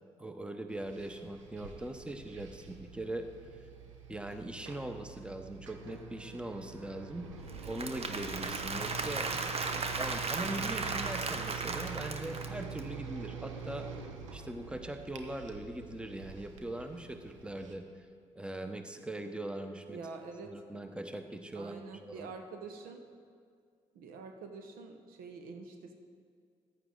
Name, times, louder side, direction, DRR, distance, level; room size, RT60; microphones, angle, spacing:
voice 1, 0.2-3.3 4.1-7.3 7.7-9.3 9.6-9.7 10.0-13.9 14.3-17.8 18.3-20.0 20.5-22.3, right 1 dB, 5° right, 7 dB, 1.0 m, -41 dB
sound 1, 0.7-17.7, right 6 dB, 85° right, 0.7 m, -45 dB
Applause / Crowd, 7.5-12.8, right 4 dB, 40° right, 1.1 m, -36 dB
voice 2, 9.3-9.8 19.9-20.8 21.5-23.0 23.9-25.9, right 4 dB, 65° right, 5 dB, 1.0 m, -46 dB
14.5 x 10.0 x 3.9 m, 2.1 s
hypercardioid pair, 45°, 16 cm